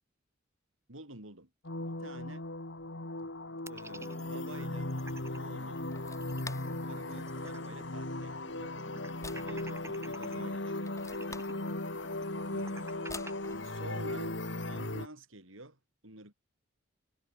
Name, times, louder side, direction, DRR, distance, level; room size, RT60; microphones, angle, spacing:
voice 1, 0.9-1.5 2.0-2.4 3.2-3.3 3.7-4.9 5.4-5.8 6.8-8.8 9.4-11.2 11.9-12.0 12.5-13.2 13.6-14.4 14.6-16.3, right 2 dB, 75° right, 6.7 m, -49 dB
sound 1, 1.6-15.1, left 2 dB, 60° left, 2.3 m, -37 dB
sound 2, 3.7-5.4 5.8-5.9 6.1-7.9 8.2-8.3 8.8-10.4 11.0-13.3, right 2 dB, 15° right, 6.2 m, -50 dB
sound 3, 5.1-14.4, left 3 dB, 15° left, 3.0 m, -52 dB
head